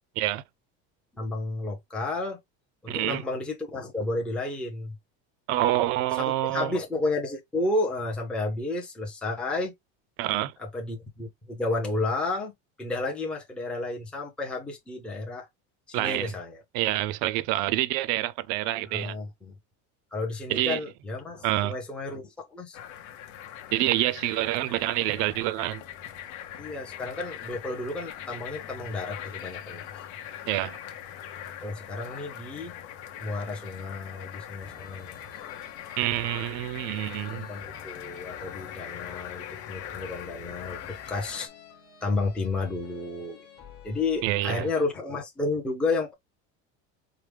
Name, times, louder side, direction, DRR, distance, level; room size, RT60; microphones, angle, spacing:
voice 1, 1.2-2.4 2.8-4.9 6.1-9.7 10.6-12.5 12.8-15.5 15.9-16.6 18.8-19.5 20.1-22.8 26.6-29.9 31.6-32.7 33.2-35.2 37.3-41.5 42.0-43.4 43.8-46.1, left 2 dB, 5° left, 0.6 m, -32 dB
voice 2, 2.9-3.2 5.5-6.7 10.2-10.5 15.9-16.3 16.7-19.2 20.5-20.8 21.4-21.8 23.7-25.8 30.5-30.8 36.0-37.5 44.2-44.7, right 15 dB, 60° right, 0.5 m, -27 dB
sound 1, 22.7-41.5, left 10 dB, 75° left, 0.8 m, -41 dB
sound 2, 34.6-44.9, left 6 dB, 30° left, 1.3 m, -50 dB
4.7 x 2.1 x 3.3 m
cardioid pair, 175°, 33 cm